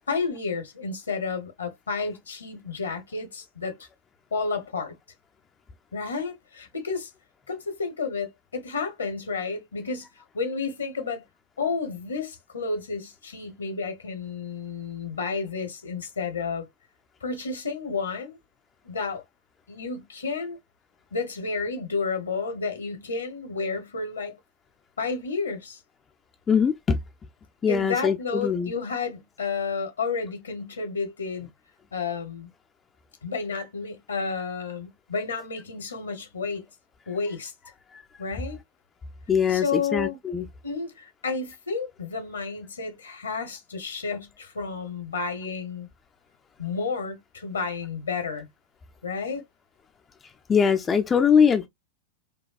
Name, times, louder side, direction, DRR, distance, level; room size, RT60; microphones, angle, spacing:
voice 1, 0.1-3.9 4.3-4.9 5.9-7.1 7.5-10.1 10.3-11.2 11.6-16.7 17.2-18.4 18.8-19.2 19.7-20.6 21.1-24.4 25.0-25.8 27.7-31.5 31.9-32.5 33.2-36.7 37.1-37.5 38.2-38.6 39.5-40.2 40.6-45.9 46.6-48.5 49.0-49.4, left 4 dB, 70° left, 1.1 m, -31 dB
voice 2, 26.5-27.0 27.6-28.7 39.3-40.5 50.5-51.7, left 6 dB, 20° left, 0.4 m, -22 dB
5.2 x 2.3 x 2.4 m
figure-of-eight pair, 90°, 0 cm